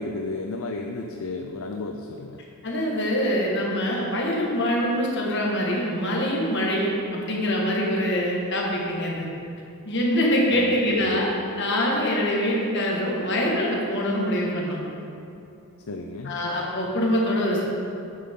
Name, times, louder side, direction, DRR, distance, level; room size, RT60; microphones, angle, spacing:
voice 1, 0.0-2.4 10.5-11.2 15.9-16.4, left 3 dB, 70° left, 3 dB, 0.5 m, -33 dB
voice 2, 2.6-9.3 9.9-14.8 16.3-17.7, equal, 55° left, -2 dB, 1.7 m, -24 dB
9.9 x 8.7 x 3.8 m, 2.6 s
head